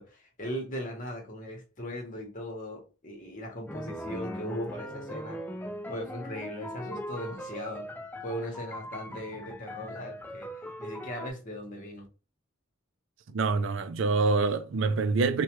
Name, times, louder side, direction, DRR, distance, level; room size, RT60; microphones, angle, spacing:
voice 1, 0.0-5.4 5.9-7.9 8.2-12.1, equal, 40° left, 1.2 m, -38 dB
sound 1, 3.7-11.3, equal, 10° left, 0.4 m, -40 dB
voice 2, 13.3-15.4, right 4 dB, 65° right, 0.4 m, -26 dB
4.6 x 2.3 x 3.0 m
head